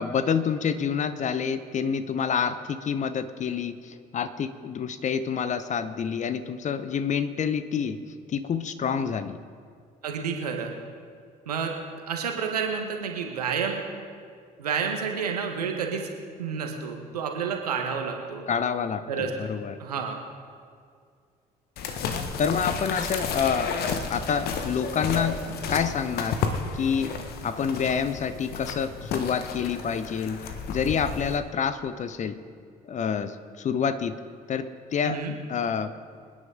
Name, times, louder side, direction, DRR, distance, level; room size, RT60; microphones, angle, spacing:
voice 1, 0.0-8.0 8.3-9.4 18.5-19.8 22.4-23.8 24.1-25.4 25.7-26.4 26.7-27.1 27.4-30.4 30.7-32.4 32.9-34.2 34.5-35.2 35.5-36.0, left 7 dB, 40° left, 12 dB, 0.9 m, -27 dB
voice 2, 10.0-10.7 11.5-11.7 12.1-13.8 14.6-16.1 16.4-18.5 19.1-19.3 19.8-20.2 35.0-35.3, right 6 dB, 80° right, 3 dB, 1.5 m, -29 dB
sound 1, 21.8-31.4, left 5 dB, 55° left, 1.2 m, -32 dB
26.0 x 10.0 x 3.9 m, 2.1 s
figure-of-eight pair, 50°, 20 cm